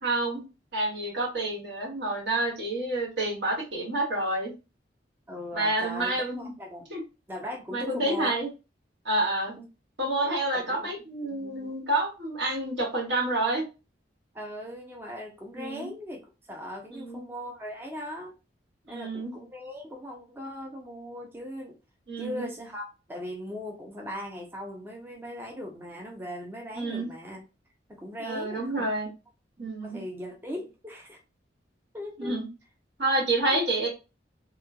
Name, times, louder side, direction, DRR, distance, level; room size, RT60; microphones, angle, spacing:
voice 1, 0.0-0.4 0.7-4.5 5.5-6.5 6.9-7.0 7.7-8.5 9.0-9.5 10.0-13.7 15.5-15.9 16.9-17.2 18.9-19.3 22.1-22.5 26.7-27.1 28.2-29.1 29.6-30.0 32.2-32.5 33.0-33.9, right 2 dB, 75° right, -3 dB, 1.5 m, -28 dB
voice 2, 5.3-6.8 7.3-8.4 9.6-9.7 10.2-10.9 11.3-11.7 14.3-16.2 16.5-18.3 18.9-21.8 22.2-27.4 27.9-28.9 29.6-31.2 31.9-32.4 33.5-33.6, left 1 dB, 10° right, 0 dB, 0.5 m, -39 dB
3.1 x 2.2 x 2.2 m, 0.29 s
head